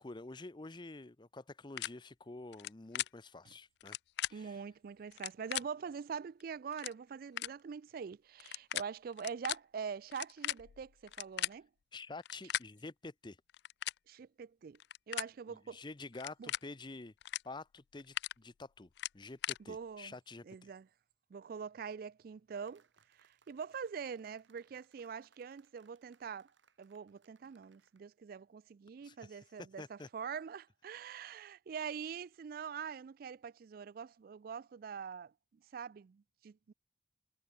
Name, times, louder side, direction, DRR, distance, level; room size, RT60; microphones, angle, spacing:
voice 1, 0.0-4.0 4.3-4.6 11.9-13.4 15.5-17.1 17.4-20.7 29.0-29.4 29.8-30.1, left 3 dB, 25° left, 0.7 m, -49 dB
sound 1, 1.8-1.9 2.5-3.1 3.8-4.3 5.1-5.6 6.4-6.5 6.7-6.9 7.4-7.5 8.4-8.8 9.1-9.6 10.1-11.5 12.2-12.6 13.5-14.0 14.8-15.3 16.1-16.6 17.2-17.4 17.8-18.3 19.0-19.6, left 14 dB, 65° left, 0.3 m, -37 dB
voice 2, 4.3-11.7 14.1-14.8 15.1-15.8 16.4-16.5 19.7-20.1 20.4-20.9 21.3-22.8 23.2-26.5 26.8-35.3 35.7-36.7, right 6 dB, 50° right, 0.3 m, -44 dB
sound 2, 22.7-28.0, right 6 dB, 85° right, 4.0 m, -72 dB
head